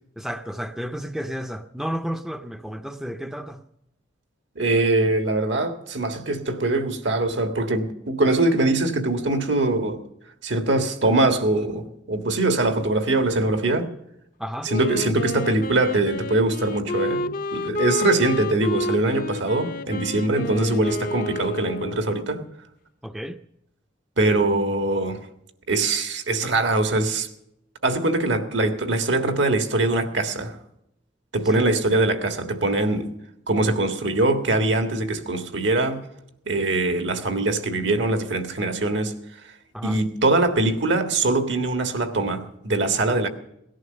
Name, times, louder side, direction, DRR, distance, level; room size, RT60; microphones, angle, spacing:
voice 1, 0.2-3.6 14.4-14.7 23.0-23.4 31.4-31.6 39.7-40.0, equal, ahead, 0.5 m, -32 dB
voice 2, 4.5-10.0 10.4-13.9 14.6-22.4 24.2-25.2 25.7-27.3 27.8-30.6 31.3-33.1 33.5-36.0 36.4-39.1 39.8-43.3, right 2 dB, 70° right, 1.6 m, -22 dB
Wind instrument woodwind instrument, 14.7-22.4, left 2 dB, 45° left, 0.5 m, -30 dB
18.0 x 11.0 x 6.7 m
head